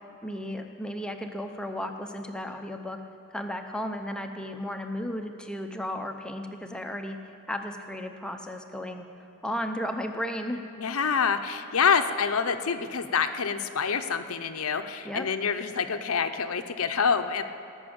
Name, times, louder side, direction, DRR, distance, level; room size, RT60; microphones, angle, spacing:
voice 1, 0.2-3.0 3.3-7.2 7.5-9.1 9.4-10.6 15.0-15.3, equal, 5° left, 5 dB, 0.6 m, -34 dB
voice 2, 10.8-17.4, left 6 dB, 80° left, 8 dB, 0.7 m, -26 dB
18.5 x 6.3 x 8.6 m, 2.8 s
head